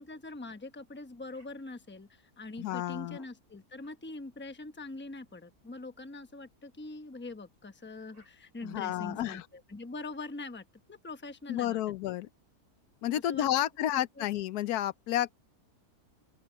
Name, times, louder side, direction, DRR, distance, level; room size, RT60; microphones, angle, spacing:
voice 1, 0.0-11.8 13.1-13.5 13.9-14.3, left 2 dB, 10° left, 0.8 m, -43 dB
sound 1, 1.3-1.5 2.5-3.0 3.8-4.0 4.8-5.0 5.9-6.1 7.5-7.6 8.1-8.3, right 1 dB, 65° right, 6.0 m, -68 dB
voice 2, 2.6-3.2 8.6-9.4 11.5-12.3 13.0-15.3, left 12 dB, 75° left, 1.2 m, -31 dB
open air
omnidirectional pair, 1.7 m